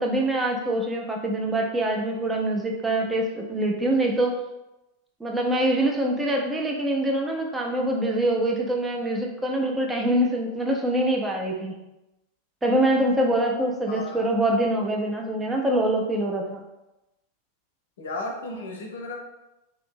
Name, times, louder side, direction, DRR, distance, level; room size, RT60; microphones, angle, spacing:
voice 1, 0.0-4.3 5.2-11.8 12.6-16.6, right 1 dB, 10° right, 0 dB, 0.5 m, -24 dB
voice 2, 13.9-14.3 18.0-19.2, left 2 dB, 65° left, 1 dB, 0.6 m, -34 dB
2.6 x 2.6 x 2.6 m, 0.96 s
figure-of-eight pair, 90°, 0 cm